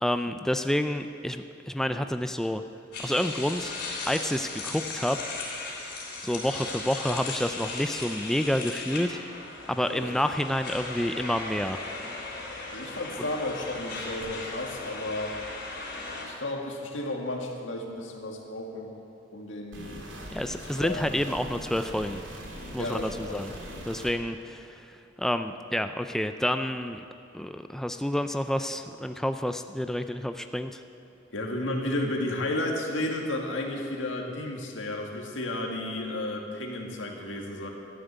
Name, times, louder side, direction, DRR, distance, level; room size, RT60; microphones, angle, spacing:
voice 1, 0.0-2.6 3.0-3.7 4.1-5.3 6.2-9.2 9.7-11.8 13.2-13.3 20.3-22.2 22.7-23.5 23.9-27.0 27.3-30.8, left 1 dB, ahead, 8 dB, 0.3 m, -29 dB
sound 1, 2.9-16.2, left 3 dB, 60° left, 3.4 m, -37 dB
voice 2, 12.7-15.3 16.2-18.9 19.3-20.1 20.8-21.1 22.7-23.4 31.3-37.7, left 1 dB, 85° left, 1 dB, 2.0 m, -33 dB
sound 2, 19.7-24.1, equal, 85° right, 2.5 m, -41 dB
13.0 x 10.0 x 8.1 m, 2.8 s
head